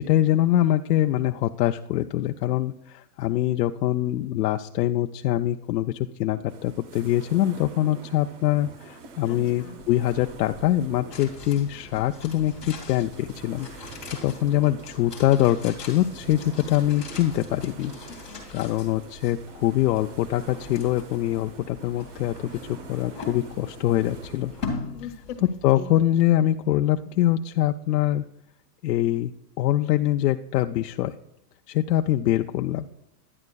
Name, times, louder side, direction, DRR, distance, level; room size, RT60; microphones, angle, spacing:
voice 1, 0.0-13.7 14.2-17.9 18.5-24.5 25.6-28.2 28.8-31.2 31.7-32.8, left 13 dB, 75° left, 5 dB, 0.5 m, -24 dB
sound 1, 6.5-24.7, right 3 dB, 45° right, 0.8 m, -44 dB
voice 2, 9.2-9.8 18.1-18.5 24.9-25.9, left 7 dB, 45° left, 3 dB, 0.8 m, -40 dB
sound 2, 11.1-26.3 26.6-26.7, left 4 dB, ahead, 0.3 m, -41 dB
11.0 x 9.1 x 2.3 m, 0.89 s
supercardioid pair, 175°, 49 cm